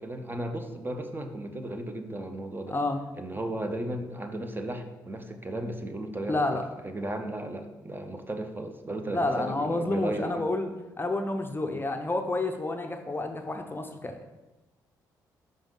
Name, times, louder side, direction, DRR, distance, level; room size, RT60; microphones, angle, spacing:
voice 1, 0.0-2.8 3.2-10.4 11.6-11.8, right 1 dB, 20° right, 5 dB, 0.7 m, -35 dB
voice 2, 2.7-3.0 6.3-6.6 9.1-10.7 11.0-14.3, left 2 dB, 20° left, 5 dB, 0.6 m, -29 dB
5.3 x 5.2 x 3.7 m, 1.1 s
hypercardioid pair, 40°, 10 cm